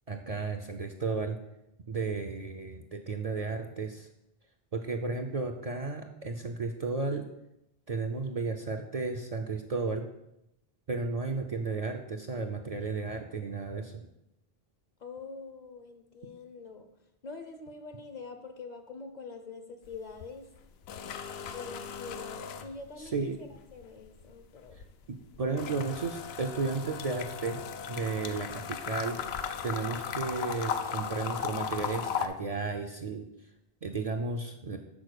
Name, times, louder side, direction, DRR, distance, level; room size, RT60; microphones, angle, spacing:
voice 1, 0.1-1.4 1.9-4.1 4.7-7.2 7.9-10.1 10.9-14.0 23.0-23.4 25.1-27.6 27.9-29.2 29.6-33.2 33.8-34.8, right 4 dB, 50° right, 3 dB, 0.5 m, -33 dB
voice 2, 15.0-16.9 17.2-20.5 21.5-24.8 25.6-25.8, left 4 dB, 50° left, 7 dB, 0.7 m, -45 dB
sound 1, 19.8-20.3 20.6-23.2 23.5-32.3, left 7 dB, 90° left, 0.8 m, -37 dB
6.2 x 4.4 x 6.5 m, 0.86 s
omnidirectional pair, 1.0 m